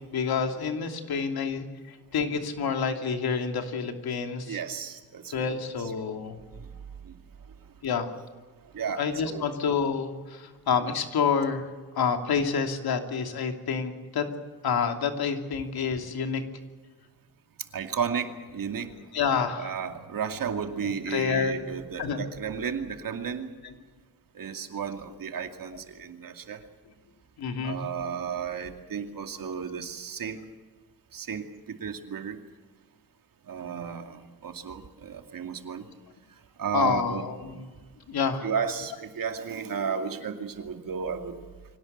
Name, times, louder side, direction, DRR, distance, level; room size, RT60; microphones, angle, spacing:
voice 1, 0.1-4.6 5.3-6.4 7.8-8.1 9.0-11.6 12.0-14.3 14.6-16.4 19.1-19.7 20.8-21.6 22.0-22.2 23.6-23.7 27.4-27.8 28.0-28.1 36.7-37.6 38.1-38.5, left 6 dB, 85° left, 5 dB, 2.9 m, -28 dB
voice 2, 4.5-5.5 6.6-6.7 7.0-7.2 8.7-9.5 17.7-18.9 19.6-23.5 24.3-26.6 27.6-30.4 31.1-32.4 33.5-35.8 36.6-37.2 38.4-41.4, right 6 dB, 65° right, 5 dB, 2.5 m, -33 dB
24.5 x 17.5 x 8.1 m, 1.4 s
cardioid pair, 105°, 36 cm